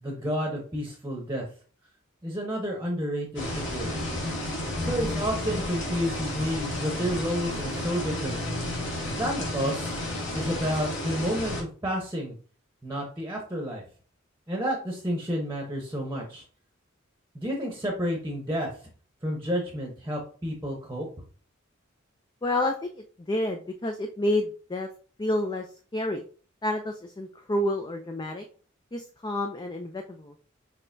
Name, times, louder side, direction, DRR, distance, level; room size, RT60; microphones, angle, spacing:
voice 1, 0.0-1.5 2.2-3.9 4.8-8.4 9.2-10.0 10.3-12.3 12.8-13.8 14.5-16.4 17.3-18.7 19.2-21.1, equal, 15° right, 0 dB, 0.9 m, -30 dB
sound 1, 3.3-11.6, left 1 dB, 60° left, 2.3 m, -32 dB
voice 2, 22.4-22.7 23.3-24.9 25.2-25.6 25.9-26.2 26.6-28.4 28.9-30.3, left 1 dB, 20° left, 4 dB, 0.4 m, -29 dB
6.3 x 3.2 x 2.6 m, 0.42 s
head